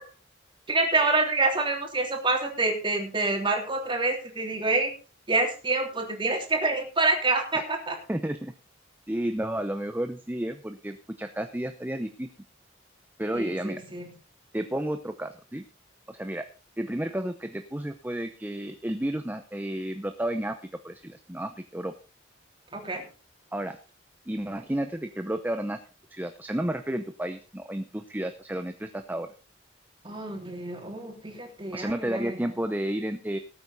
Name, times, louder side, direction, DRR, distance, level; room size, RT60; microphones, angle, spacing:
voice 1, 0.7-4.9 5.3-7.9 13.3-14.0 22.7-23.0 30.0-32.5, right 3 dB, 25° right, 2 dB, 3.3 m, -27 dB
voice 2, 8.1-8.5 9.1-12.3 13.2-13.8 14.5-15.6 16.1-16.5 16.8-21.9 23.5-23.8 24.3-25.8 26.1-29.3 31.7-33.4, right 1 dB, 10° right, 8 dB, 0.7 m, -32 dB
18.5 x 8.6 x 4.1 m, 0.33 s
head